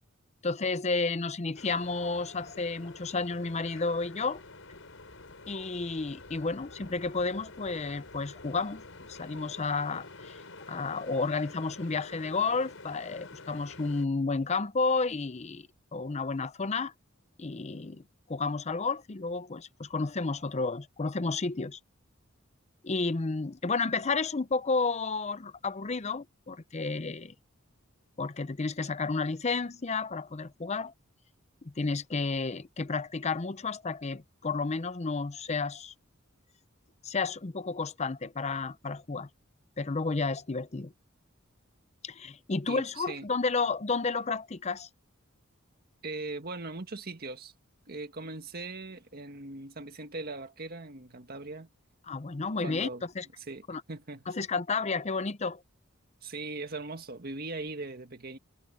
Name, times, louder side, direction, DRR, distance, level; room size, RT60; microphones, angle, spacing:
voice 1, 0.4-4.4 5.5-8.8 9.1-10.4 10.7-15.7 15.9-16.9 17.4-18.0 18.3-21.8 22.8-27.3 28.2-30.9 31.6-35.9 37.0-39.3 39.8-40.9 42.0-44.9 52.1-52.9 53.2-53.3 53.7-53.8 54.3-55.6, left 4 dB, 35° left, 0.7 m, -31 dB
sound 1, 1.5-14.0, left 3 dB, 70° left, 6.1 m, -48 dB
voice 2, 42.7-43.3 46.0-47.5 47.9-51.7 52.6-53.1 53.5-54.3 56.2-58.4, right 3 dB, 50° right, 1.8 m, -40 dB
head